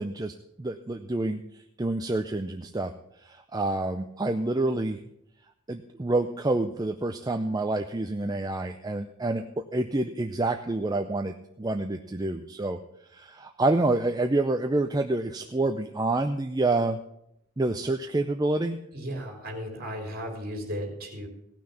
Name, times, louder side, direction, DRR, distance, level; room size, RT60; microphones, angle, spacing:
voice 1, 0.0-2.9 3.2-5.0 5.7-12.8 13.1-17.0 17.6-18.8, right 2 dB, 15° right, 5 dB, 0.5 m, -28 dB
voice 2, 18.9-21.3, equal, 45° right, 2 dB, 3.5 m, -35 dB
16.5 x 6.1 x 7.0 m, 0.76 s
head